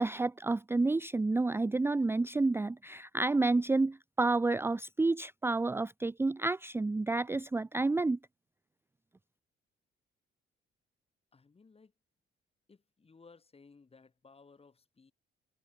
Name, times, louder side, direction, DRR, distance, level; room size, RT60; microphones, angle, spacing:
voice 1, 0.0-8.2, right 3 dB, 10° right, 0.5 m, -30 dB
voice 2, 11.3-11.9 12.7-15.1, left 4 dB, 30° left, 4.9 m, -59 dB
cardioid pair, 90°, 20 cm